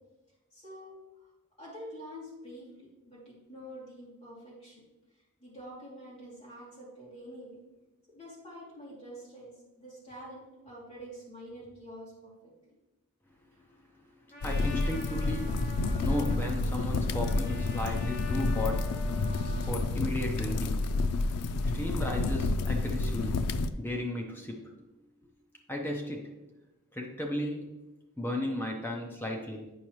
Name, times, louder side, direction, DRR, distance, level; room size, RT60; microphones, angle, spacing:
voice 1, 0.5-1.3 1.6-4.9 5.1-7.6 8.1-12.5 14.7-14.8, equal, 25° left, -7 dB, 2.6 m, -47 dB
Trumpet, 14.3-19.8, left 2 dB, 40° left, 2.3 m, -46 dB
sound 1, 14.4-23.7, left 3 dB, 90° left, 0.4 m, -30 dB
voice 2, 14.4-15.7 16.0-20.9 21.2-24.7 25.7-26.3 26.9-27.7 28.2-29.7, left 1 dB, 10° left, 0 dB, 0.6 m, -35 dB
8.6 x 5.7 x 3.1 m, 1.0 s
head